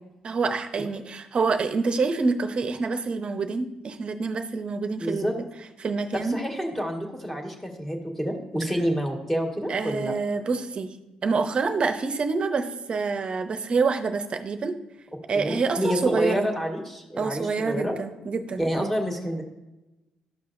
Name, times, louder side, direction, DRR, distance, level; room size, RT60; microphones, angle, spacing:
voice 1, 0.2-5.3 5.8-6.4 9.7-10.9 11.2-14.8 15.3-16.5 17.2-18.9, right 4 dB, 45° right, 8 dB, 0.7 m, -27 dB
voice 2, 5.0-5.3 6.1-10.1 15.3-17.9 18.6-19.4, equal, 10° left, 1 dB, 1.6 m, -28 dB
12.5 x 5.6 x 2.6 m, 0.99 s
supercardioid pair, 75°, 3 cm